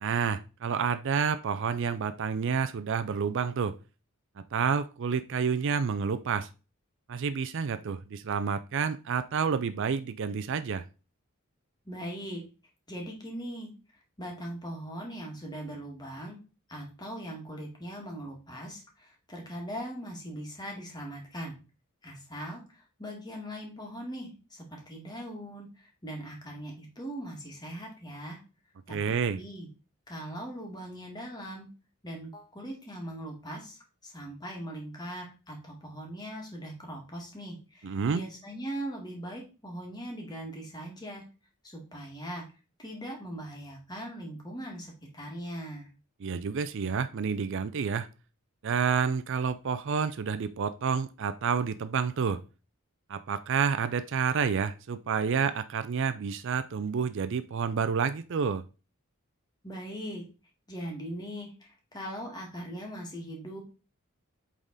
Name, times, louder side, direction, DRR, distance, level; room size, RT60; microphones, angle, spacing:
voice 1, 0.0-3.8 4.4-6.5 7.1-10.8 28.9-29.4 37.8-38.2 46.2-48.1 48.6-52.4 53.1-58.6, right 6 dB, 55° right, 0.4 m, -29 dB
voice 2, 11.8-12.4 12.9-13.7 14.2-16.4 16.7-21.6 22.0-28.4 28.9-29.7 30.1-31.7 32.0-41.2 41.6-42.5 42.8-45.9 59.6-60.2 60.7-63.6, right 1 dB, 20° left, 2.1 m, -40 dB
8.2 x 3.7 x 4.0 m
head